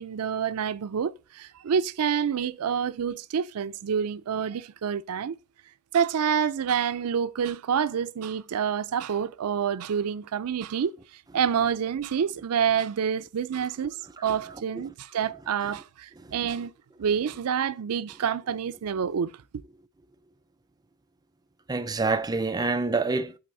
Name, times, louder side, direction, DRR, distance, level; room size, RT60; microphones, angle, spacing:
voice 1, 0.0-5.4 5.9-14.0 14.2-16.7 17.0-19.3, right 7 dB, 80° right, 0.4 m, -28 dB
voice 2, 21.7-23.4, right 3 dB, 15° right, 0.5 m, -27 dB
7.8 x 4.2 x 3.9 m
head